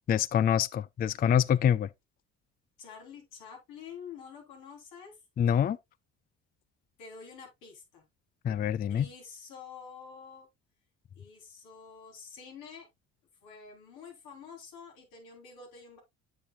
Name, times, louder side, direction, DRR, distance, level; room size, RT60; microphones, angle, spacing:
voice 1, 0.1-1.9 5.4-5.8 8.4-9.1, left 9 dB, 25° left, 0.4 m, -25 dB
voice 2, 2.8-5.2 7.0-8.1 8.9-10.5 11.2-12.9 13.4-16.0, left 6 dB, 80° left, 3.9 m, -48 dB
8.2 x 7.1 x 2.4 m
supercardioid pair, 70°, 35 cm